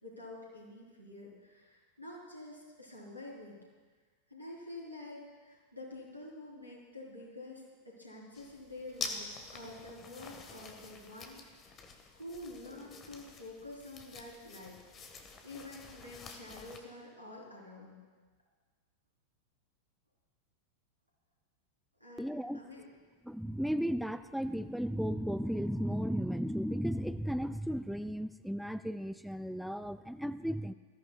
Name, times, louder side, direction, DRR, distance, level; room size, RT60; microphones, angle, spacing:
voice 1, 0.0-3.6 4.3-11.8 12.1-18.0 22.0-22.9, left 2 dB, 90° right, -4 dB, 3.7 m, -48 dB
sound 1, 8.3-16.8, left 4 dB, 25° left, 1.3 m, -47 dB
voice 2, 22.2-22.6 23.2-30.7, equal, ahead, 12 dB, 0.3 m, -35 dB
19.5 x 14.0 x 2.3 m, 1.4 s
figure-of-eight pair, 90°, 0 cm